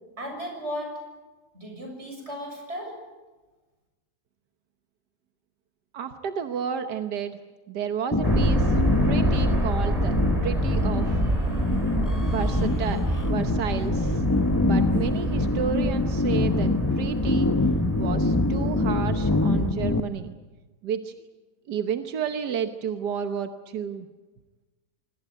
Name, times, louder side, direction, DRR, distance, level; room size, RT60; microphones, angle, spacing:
voice 1, 0.2-1.0 1.5-3.0, equal, 40° right, 3 dB, 7.2 m, -35 dB
voice 2, 5.9-7.4 7.7-8.8 9.1-10.1 10.4-11.2 12.2-14.2 14.6-17.5 18.0-20.4 20.8-21.1 21.7-24.1, right 7 dB, 90° right, 8 dB, 1.7 m, -31 dB
sound 1, 8.1-20.0, left 2 dB, 15° left, 0.8 m, -25 dB
sound 2, 8.2-19.7, right 1 dB, 20° right, 2.7 m, -28 dB
26.0 x 18.5 x 9.2 m, 1.2 s
omnidirectional pair, 1.7 m